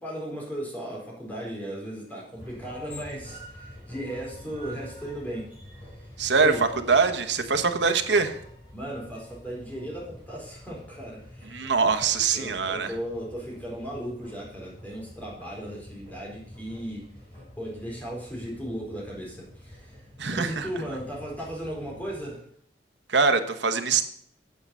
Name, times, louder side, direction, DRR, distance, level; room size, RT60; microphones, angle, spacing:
voice 1, 0.0-5.5 6.4-6.6 8.7-11.7 12.0-17.1 17.5-20.0 20.3-22.4, equal, 10° left, -3 dB, 4.2 m, -36 dB
sound 1, 2.3-22.3, equal, 30° left, 5.3 m, -47 dB
voice 2, 6.2-6.5 6.9-8.4 11.5-12.9 20.2-20.7 23.1-24.1, right 5 dB, 90° right, 8 dB, 1.1 m, -23 dB
8.8 x 8.5 x 5.5 m, 0.65 s
head